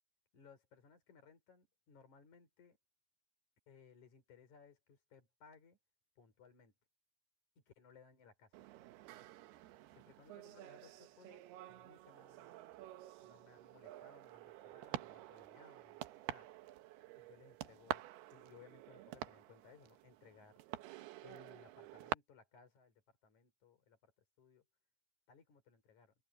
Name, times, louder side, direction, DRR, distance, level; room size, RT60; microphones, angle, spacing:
voice 1, 0.3-2.8 3.7-5.8 6.2-6.7 7.7-8.6 9.9-12.5 13.2-16.5 17.2-18.1 18.3-20.6 21.2-24.1 24.4-24.7 25.3-26.1, left 6 dB, 40° left, 5.5 m, -63 dB
sound 1, 8.5-22.1, right 15 dB, 75° right, 2.6 m, -48 dB
omnidirectional pair, 5.3 m